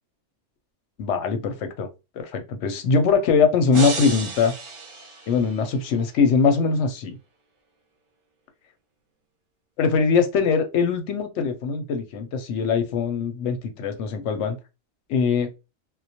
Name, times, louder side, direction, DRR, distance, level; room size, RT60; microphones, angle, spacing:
voice 1, 1.0-1.9 2.2-4.5 5.3-7.2 9.8-14.6 15.1-15.5, left 5 dB, 85° left, 0.9 m, -22 dB
sound 1, 3.7-5.9, right 4 dB, 40° right, 0.4 m, -33 dB
2.2 x 2.1 x 2.7 m
omnidirectional pair, 1.2 m